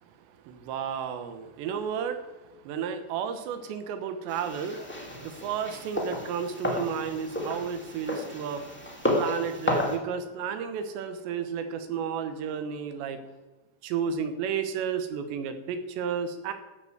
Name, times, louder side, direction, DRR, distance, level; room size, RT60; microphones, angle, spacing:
voice 1, 0.5-2.2 2.6-4.8 5.2-8.6 9.1-13.2 13.8-16.5, right 7 dB, 80° right, 9 dB, 3.3 m, -32 dB
sound 1, 4.3-10.0, left 1 dB, 10° left, 0.6 m, -32 dB
14.5 x 6.2 x 7.9 m, 1.1 s
omnidirectional pair, 5.2 m